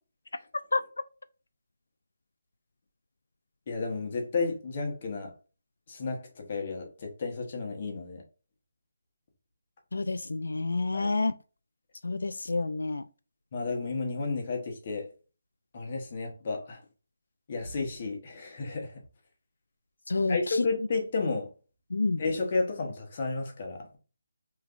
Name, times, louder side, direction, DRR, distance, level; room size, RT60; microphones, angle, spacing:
voice 1, 3.7-5.3 5.9-8.2 10.9-11.1 13.5-15.1 15.7-16.8 17.5-19.0 20.3-21.5 22.2-24.0, left 3 dB, 30° left, 1.0 m, -32 dB
voice 2, 9.9-11.3 12.0-13.0 20.1-20.6 21.9-22.2, left 3 dB, 85° left, 0.3 m, -28 dB
5.2 x 3.2 x 2.4 m
hypercardioid pair, 175°, 0 cm